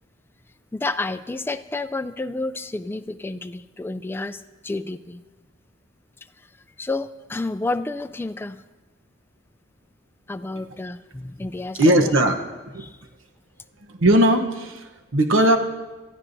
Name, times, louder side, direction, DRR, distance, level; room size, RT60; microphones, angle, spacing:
voice 1, 0.7-5.2 6.8-8.6 10.3-12.1 12.8-13.0, left 2 dB, 10° left, 11 dB, 0.3 m, -30 dB
voice 2, 11.7-12.4 12.7-12.8 13.9-15.6, right 1 dB, 80° right, 5 dB, 1.0 m, -18 dB
22.5 x 14.0 x 2.7 m, 1.2 s
head